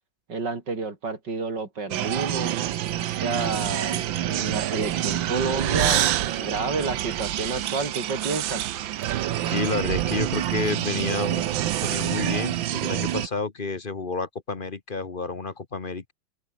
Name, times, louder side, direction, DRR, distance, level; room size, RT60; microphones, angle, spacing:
voice 1, 0.3-2.6 3.1-8.6, right 4 dB, 65° right, 4.5 m, -30 dB
sound 1, 1.9-13.3, right 12 dB, 85° right, 1.7 m, -27 dB
voice 2, 9.5-11.4 11.8-16.1, left 4 dB, 30° left, 1.3 m, -30 dB
omnidirectional pair, 2.0 m